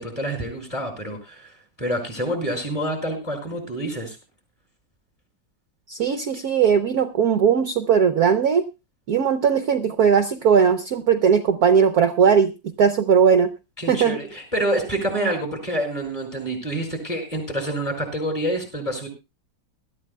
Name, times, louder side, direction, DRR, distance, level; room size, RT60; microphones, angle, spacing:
voice 1, 0.0-1.5 1.8-4.2 6.0-6.1 13.8-19.1, right 1 dB, 15° left, 4 dB, 5.2 m, -27 dB
voice 2, 5.9-8.6 9.1-12.5 12.8-13.5 13.9-14.2, right 7 dB, 60° right, 9 dB, 1.1 m, -18 dB
21.0 x 13.0 x 2.2 m, 0.27 s
omnidirectional pair, 2.1 m